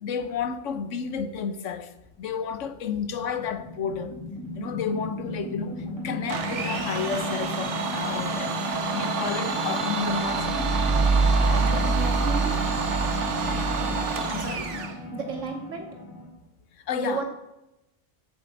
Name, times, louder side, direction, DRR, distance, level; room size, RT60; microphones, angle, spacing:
voice 1, 0.0-1.9 2.2-4.1 4.6-10.7 11.4-11.7 14.3-14.7 16.9-17.2, left 6 dB, 85° left, 1.2 m, -31 dB
sound 1, 2.0-16.3, left 1 dB, 15° left, 4.6 m, -34 dB
Domestic sounds home sounds, 6.3-15.0, right 5 dB, 75° right, 1.3 m, -29 dB
sound 2, 10.1-14.8, right 3 dB, 50° right, 1.3 m, -25 dB
voice 2, 11.6-12.6 15.1-15.9 17.0-17.2, right 5 dB, 90° right, 2.2 m, -32 dB
8.7 x 6.9 x 7.8 m
omnidirectional pair, 1.2 m